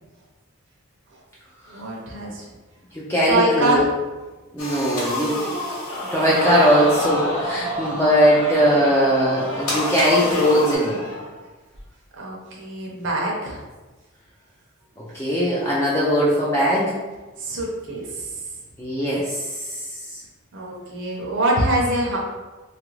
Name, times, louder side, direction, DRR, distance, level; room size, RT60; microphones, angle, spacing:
voice 1, 1.7-2.5 3.3-3.9 12.2-13.6 17.4-18.3 20.5-22.2, right 1 dB, 55° right, -3 dB, 0.6 m, -24 dB
voice 2, 2.9-3.8 4.5-5.4 6.1-11.0 15.1-16.9 18.8-19.5, equal, 10° left, -7 dB, 0.4 m, -19 dB
sound 1, 4.6-7.0 9.7-10.7, left 1 dB, 90° left, 0.8 m, -28 dB
Crowd, 5.9-11.3 11.7-11.8, left 1 dB, 55° left, 0.9 m, -29 dB
3.0 x 2.4 x 3.1 m, 1.2 s
head